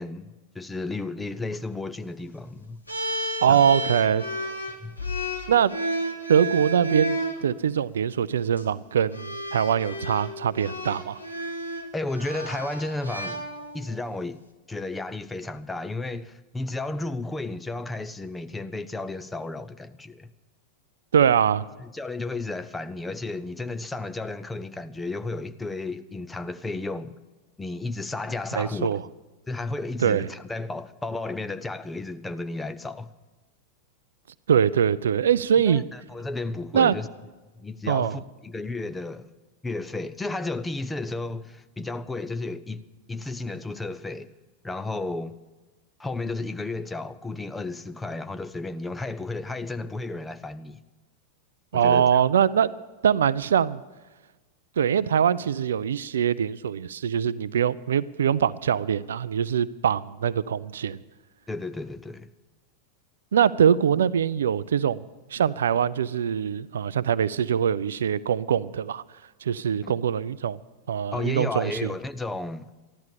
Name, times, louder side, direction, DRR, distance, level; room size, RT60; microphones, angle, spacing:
voice 1, 0.0-2.8 3.5-3.6 4.8-5.0 11.9-13.4 13.7-14.4 14.7-20.3 21.8-27.2 27.6-29.0 29.5-33.1 35.7-37.1 37.6-39.3 39.6-44.3 44.6-45.3 46.0-50.8 51.7-52.2 61.5-62.3 69.8-69.9 71.1-72.7, left 2 dB, 10° left, 0.6 m, -33 dB
sound 1, 2.9-7.4 8.4-8.6 9.1-13.9, right 1 dB, 85° left, 1.6 m, -32 dB
voice 2, 3.4-4.2 5.5-5.7 6.3-11.2 21.1-21.6 28.6-29.0 30.0-30.3 34.5-35.8 36.7-36.9 37.9-38.2 51.7-52.7 53.0-53.8 54.8-61.0 63.3-65.0 65.3-69.0 69.4-70.6 70.9-71.9, right 8 dB, 65° right, 0.4 m, -23 dB
14.0 x 11.5 x 6.9 m
figure-of-eight pair, 90°, 0 cm